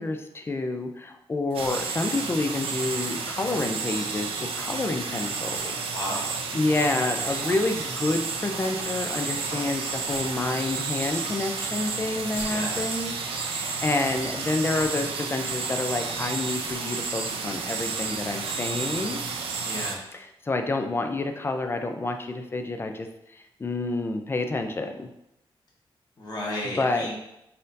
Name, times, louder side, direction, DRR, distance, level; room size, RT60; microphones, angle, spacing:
voice 1, 0.0-5.8 6.5-19.2 20.1-25.1 26.6-27.1, left 2 dB, 25° left, 5 dB, 0.4 m, -29 dB
sound 1, 1.5-2.0 3.4-3.8 5.5-5.9 7.9-8.1 9.9-10.7 12.2-13.0 14.6-15.1 16.6-17.0, left 1 dB, 80° left, 1.1 m, -45 dB
sound 2, 1.5-19.9, right 4 dB, 85° right, 0.5 m, -31 dB
voice 2, 5.9-6.4 12.5-12.8 19.6-20.0 26.2-27.1, left 1 dB, 50° left, -4 dB, 1.3 m, -33 dB
4.2 x 3.9 x 2.6 m, 0.84 s
wide cardioid pair, 120°, 9 cm